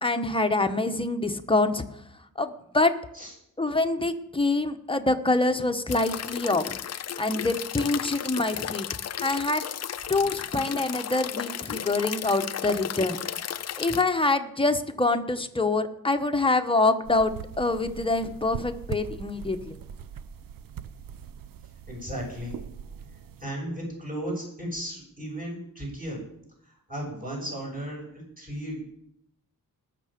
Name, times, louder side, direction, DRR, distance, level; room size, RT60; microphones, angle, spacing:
voice 1, 0.0-1.8 2.4-2.9 3.6-6.8 7.2-8.9 9.2-9.6 10.1-13.2 13.8-19.7, left 2 dB, 15° left, 7 dB, 1.0 m, -25 dB
sound 1, 5.9-14.0, left 9 dB, 50° left, 0.5 m, -34 dB
sound 2, 17.0-23.4, right 8 dB, 75° right, 0.7 m, -41 dB
voice 2, 21.9-22.6 23.4-26.2 26.6-28.8, equal, 25° right, -3 dB, 6.6 m, -35 dB
20.0 x 6.7 x 5.1 m, 0.75 s
wide cardioid pair, 105°, 34 cm